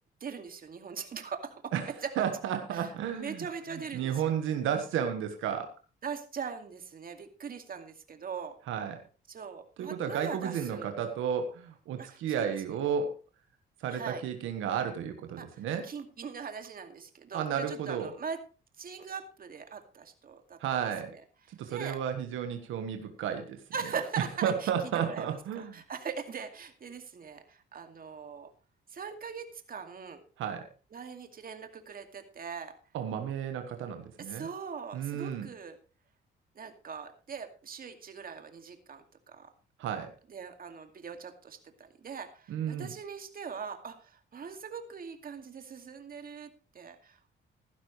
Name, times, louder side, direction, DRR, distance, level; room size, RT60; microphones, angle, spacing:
voice 1, 0.2-2.1 2.7-4.3 6.0-8.6 9.3-10.9 12.0-12.5 13.9-14.2 15.4-18.4 18.8-20.6 21.7-22.0 23.7-25.3 25.6-28.5 28.9-30.2 30.9-32.7 34.2-35.8 36.6-39.5 40.3-47.3, right 6 dB, 45° right, 6 dB, 2.3 m, -41 dB
voice 2, 1.7-3.5 3.9-5.7 8.7-9.0 9.8-13.1 13.8-15.9 17.3-18.1 20.6-21.1 21.5-23.6 24.4-25.8 30.4-30.7 32.9-34.5 34.9-35.5 39.8-40.1 42.5-42.9, right 8 dB, 85° right, 6 dB, 1.5 m, -32 dB
15.5 x 12.0 x 3.2 m, 0.34 s
cardioid pair, 90°, 20 cm